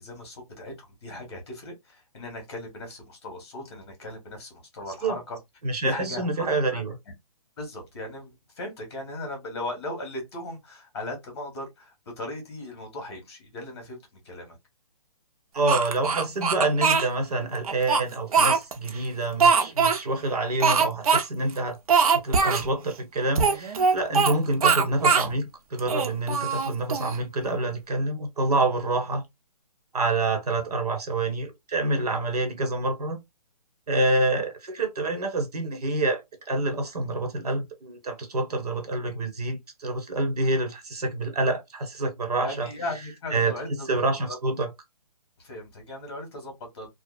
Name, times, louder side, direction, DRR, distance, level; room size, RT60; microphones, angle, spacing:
voice 1, 0.0-5.4 5.8-6.8 7.6-14.6 42.4-43.9 44.3-44.4 45.4-46.9, left 1 dB, 45° left, 1.4 m, -37 dB
voice 2, 5.6-6.9 15.5-21.8 22.1-29.2 29.9-33.2 33.9-42.7 43.3-44.7, right 2 dB, 85° right, 1.2 m, -27 dB
Speech, 15.7-17.1 17.6-18.9 19.4-20.0 20.6-21.2 21.5-21.6 21.9-22.6 23.3-24.3 24.6-25.3 25.8-27.2, right 5 dB, 70° right, 0.7 m, -21 dB
2.7 x 2.3 x 2.4 m
hypercardioid pair, 170°, 20 cm